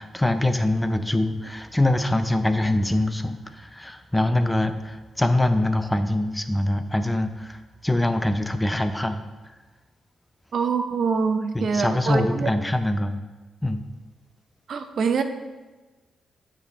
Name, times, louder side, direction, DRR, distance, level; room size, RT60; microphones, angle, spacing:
voice 1, 0.0-9.2 11.5-13.2 13.6-13.8, left 1 dB, 10° left, 9 dB, 0.5 m, -24 dB
voice 2, 10.5-12.5 14.7-15.2, right 5 dB, 60° right, 8 dB, 0.6 m, -24 dB
7.4 x 5.1 x 4.0 m, 1.2 s
cardioid pair, 85°, 0 cm